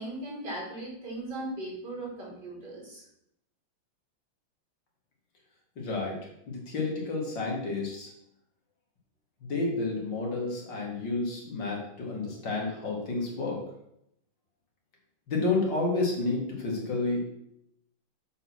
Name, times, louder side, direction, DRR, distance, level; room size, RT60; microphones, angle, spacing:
voice 1, 0.0-3.0, right 1 dB, 55° right, -5 dB, 4.1 m, -38 dB
voice 2, 5.8-6.2 6.5-8.1 9.4-13.6 15.3-17.2, left 3 dB, 60° left, -1 dB, 2.7 m, -30 dB
7.4 x 5.3 x 6.1 m, 0.76 s
omnidirectional pair, 2.2 m